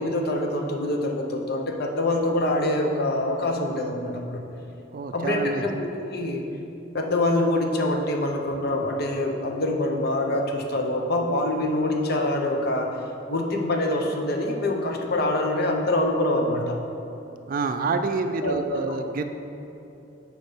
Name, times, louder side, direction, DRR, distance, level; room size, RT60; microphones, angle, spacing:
voice 1, 0.0-4.4 5.1-6.4 6.9-12.9 13.3-16.8 18.4-19.0, left 1 dB, 55° left, 2 dB, 0.8 m, -25 dB
voice 2, 4.9-5.6 17.5-19.2, right 3 dB, 45° right, 7 dB, 0.4 m, -27 dB
6.3 x 5.1 x 5.0 m, 2.8 s
head